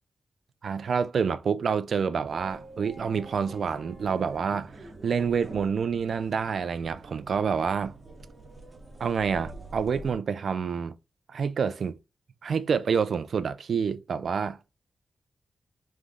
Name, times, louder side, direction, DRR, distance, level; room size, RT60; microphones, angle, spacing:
voice 1, 0.6-4.7 5.0-7.9 9.0-10.9 11.3-12.0 12.4-14.6, right 6 dB, 70° right, 0.3 m, -28 dB
sound 1, 2.3-10.1, right 2 dB, 35° right, 1.2 m, -46 dB
3.5 x 3.2 x 3.7 m
cardioid pair, 80°, 0 cm